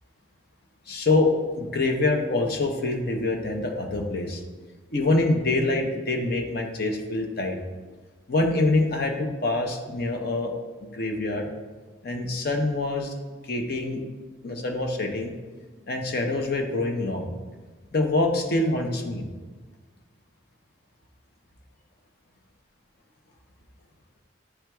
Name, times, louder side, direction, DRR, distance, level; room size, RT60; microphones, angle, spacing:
voice 1, 0.9-4.4 4.9-7.6 8.3-10.5 10.9-11.5 12.0-13.1 13.4-14.0 14.4-15.3 15.9-17.3 17.9-19.2, left 2 dB, 50° left, 3 dB, 0.7 m, -25 dB
9.8 x 4.5 x 2.3 m, 1.3 s
head